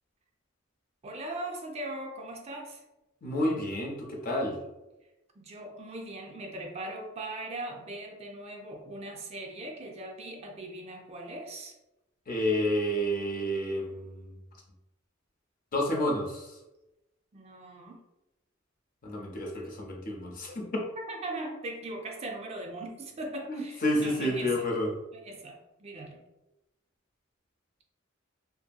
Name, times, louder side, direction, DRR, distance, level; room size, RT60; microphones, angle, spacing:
voice 1, 1.0-2.8 5.4-11.7 17.3-18.0 21.0-24.7 25.1-26.2, right 2 dB, 30° right, 2 dB, 0.4 m, -40 dB
voice 2, 3.2-4.6 12.3-14.4 15.7-16.5 19.0-20.8 23.5-24.9, left 1 dB, 45° left, 0 dB, 0.6 m, -30 dB
2.7 x 2.6 x 2.3 m, 0.96 s
head